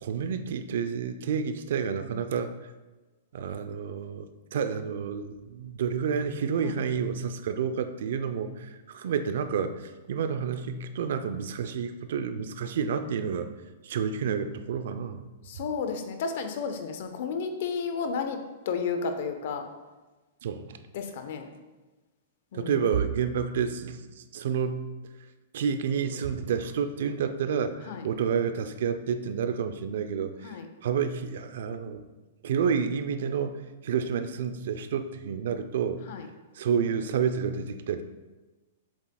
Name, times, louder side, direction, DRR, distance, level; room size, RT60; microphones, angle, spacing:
voice 1, 0.0-2.5 3.3-13.5 13.8-15.2 20.4-20.8 22.5-24.0 24.3-24.9 25.5-27.7 28.0-30.3 30.8-32.0 32.4-36.0 36.6-38.0, right 7 dB, 70° right, 9 dB, 0.5 m, -29 dB
voice 2, 15.4-18.4 18.6-19.7 20.9-21.5 22.5-22.8 27.8-28.1 30.4-30.7 36.0-36.3, left 5 dB, 65° left, 7 dB, 0.8 m, -32 dB
7.3 x 7.2 x 2.3 m, 1.2 s
hypercardioid pair, 130°, 0 cm